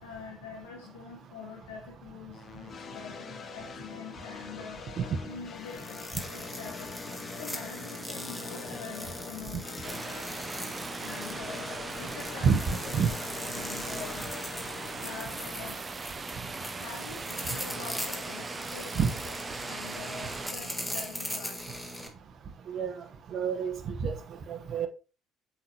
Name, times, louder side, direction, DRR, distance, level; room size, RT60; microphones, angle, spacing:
voice 1, 0.0-10.0 11.0-12.5 12.8-14.5 14.9-15.9 16.6-19.3 19.6-21.6, left 6 dB, 85° left, 1.2 m, -45 dB
sound 1, 2.3-15.5, left 6 dB, 45° left, 0.9 m, -44 dB
sound 2, 5.7-22.1, equal, 5° left, 1.7 m, -40 dB
sound 3, 9.8-20.5, right 4 dB, 30° right, 0.6 m, -40 dB
voice 2, 12.4-13.1 18.9-19.1 22.7-22.9 23.3-24.1 24.5-24.9, right 6 dB, 50° right, 1.0 m, -27 dB
7.7 x 5.6 x 2.9 m
hypercardioid pair, 60°, 0 cm